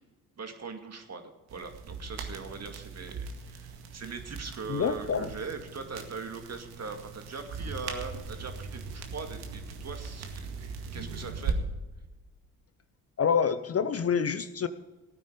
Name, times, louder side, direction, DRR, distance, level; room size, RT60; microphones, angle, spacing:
voice 1, 0.4-11.6, right 4 dB, 40° right, 6 dB, 2.3 m, -41 dB
sound 1, 1.5-11.5, right 5 dB, 65° right, 2.0 m, -39 dB
voice 2, 4.7-5.3 13.2-14.7, left 6 dB, 35° left, 13 dB, 0.8 m, -27 dB
17.5 x 9.3 x 5.1 m, 1.2 s
hypercardioid pair, 50°, 42 cm